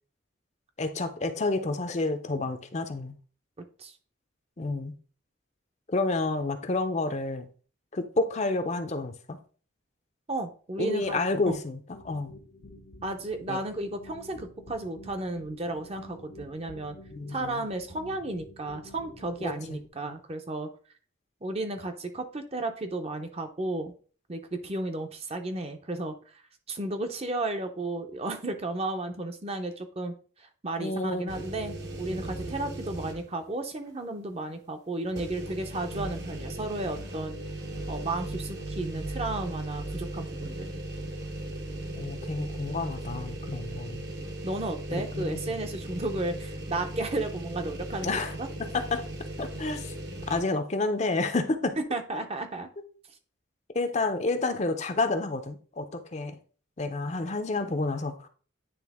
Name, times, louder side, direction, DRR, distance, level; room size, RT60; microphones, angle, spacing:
voice 1, 0.8-3.1 4.6-4.9 5.9-7.5 7.9-9.4 10.8-12.3 13.5-13.6 17.1-17.6 19.4-19.8 30.8-31.3 42.0-44.0 44.9-45.5 48.0-48.4 48.7-49.0 49.4-49.9 50.3-51.7 53.7-56.4 56.8-58.1, left 3 dB, 35° left, 0.6 m, -29 dB
voice 2, 10.3-11.2 11.5-11.6 13.0-17.0 17.3-20.7 21.4-23.9 24.3-26.2 26.7-30.1 30.4-37.4 37.9-40.7 44.4-48.5 51.9-52.7, right 2 dB, 30° right, 0.7 m, -33 dB
sound 1, 11.9-19.9, left 1 dB, 75° left, 1.0 m, -49 dB
sound 2, 31.3-33.4 33.9-34.0 35.1-50.4, right 1 dB, 55° right, 1.1 m, -37 dB
9.4 x 3.4 x 3.5 m
head